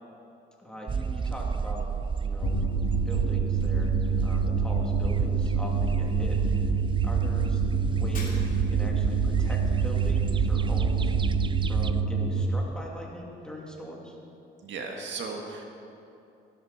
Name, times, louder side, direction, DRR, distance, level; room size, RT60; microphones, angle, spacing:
voice 1, 0.6-1.9 2.2-2.6 3.0-3.9 4.2-6.7 7.0-11.1 11.7-14.2, equal, 5° left, -3 dB, 2.8 m, -41 dB
sound 1, 0.9-12.0, right 5 dB, 25° right, 0.4 m, -29 dB
sound 2, 2.4-12.4, right 5 dB, 75° left, 1.7 m, -27 dB
Shatter, 8.1-8.9, left 3 dB, 45° left, 3.0 m, -43 dB
voice 2, 14.6-15.6, right 4 dB, 70° right, 2 dB, 1.7 m, -36 dB
16.0 x 12.5 x 4.3 m, 2.8 s
cardioid pair, 90°, 20 cm